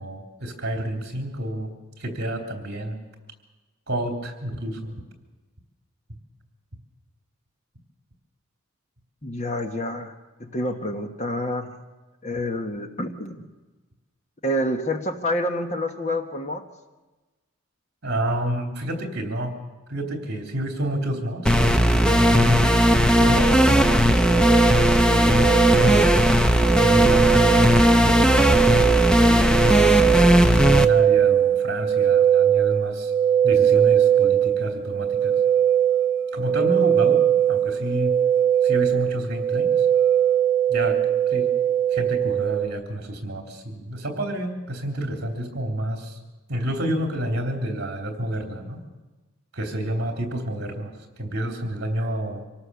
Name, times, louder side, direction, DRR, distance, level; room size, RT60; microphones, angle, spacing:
voice 1, 0.0-1.7 2.0-3.0 3.9-4.9 18.0-19.6 19.9-22.7 23.2-24.2 25.1-26.3 26.8-30.1 30.5-33.1 33.4-35.4 36.3-38.1 38.6-39.9 40.7-41.0 41.3-41.5 41.9-46.2 46.5-48.8 49.5-52.4, right 1 dB, 50° right, 3 dB, 3.4 m, -29 dB
voice 2, 9.2-10.1 10.4-11.7 12.2-13.5 14.4-16.6, left 1 dB, 30° left, 5 dB, 1.3 m, -28 dB
sound 1, 21.5-30.9, equal, 5° left, 0.7 m, -17 dB
sound 2, 23.3-42.7, right 9 dB, 20° right, 1.7 m, -21 dB
25.5 x 18.0 x 7.0 m, 1.2 s
head